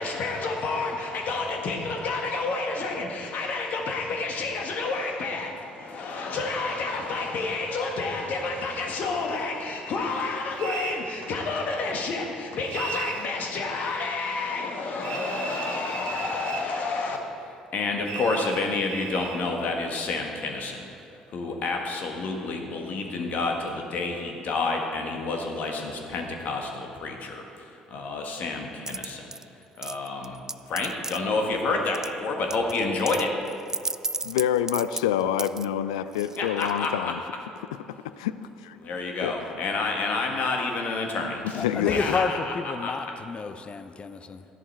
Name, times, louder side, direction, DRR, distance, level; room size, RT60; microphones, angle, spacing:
voice 1, 0.0-17.2 17.7-20.9 21.3-29.3 29.8-30.4 30.7-33.3 36.4-37.2 38.8-43.0, left 3 dB, 50° left, 2 dB, 1.6 m, -29 dB
sound 1, 10.6-11.0 12.7-13.3 15.0-16.7 18.0-19.4, right 7 dB, 70° right, 0.8 m, -36 dB
sound 2, 28.9-29.4 29.8-31.2 31.9-32.1 32.5-35.7 36.1-36.9, right 3 dB, 15° right, 0.3 m, -33 dB
voice 2, 34.2-37.2 37.9-38.3 38.6-38.8 39.2-39.3 41.6-42.2, left 10 dB, 70° left, 13 dB, 0.4 m, -27 dB
voice 3, 41.5-44.4, left 4 dB, 30° left, 11 dB, 0.7 m, -30 dB
13.5 x 11.0 x 4.6 m, 2.7 s
figure-of-eight pair, 50°, 3 cm